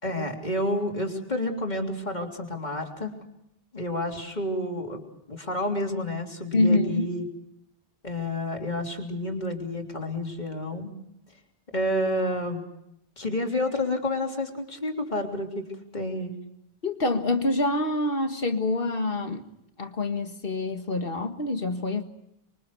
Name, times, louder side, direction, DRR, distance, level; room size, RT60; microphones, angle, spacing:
voice 1, 0.0-3.1 3.7-5.0 5.3-7.2 8.0-10.9 11.7-12.6 13.2-15.7 15.9-16.4, left 1 dB, 45° left, 2 dB, 3.5 m, -29 dB
voice 2, 6.5-7.1 16.8-19.4 19.8-22.0, left 2 dB, 65° left, 6 dB, 1.9 m, -26 dB
26.5 x 23.5 x 6.7 m, 0.80 s
omnidirectional pair, 1.0 m